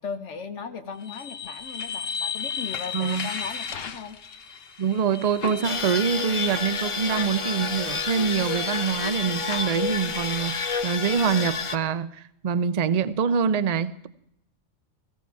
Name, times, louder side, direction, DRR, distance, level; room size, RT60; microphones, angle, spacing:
voice 1, 0.0-4.2, left 6 dB, 75° left, 7 dB, 1.2 m, -37 dB
sound 1, 1.0-11.0, left 6 dB, 55° left, 1.0 m, -36 dB
voice 2, 2.9-3.3 4.8-14.1, right 6 dB, 40° right, 14 dB, 0.6 m, -25 dB
sound 2, 5.6-11.8, left 5 dB, 35° left, 0.6 m, -29 dB
16.5 x 15.5 x 4.6 m, 0.74 s
omnidirectional pair, 1.2 m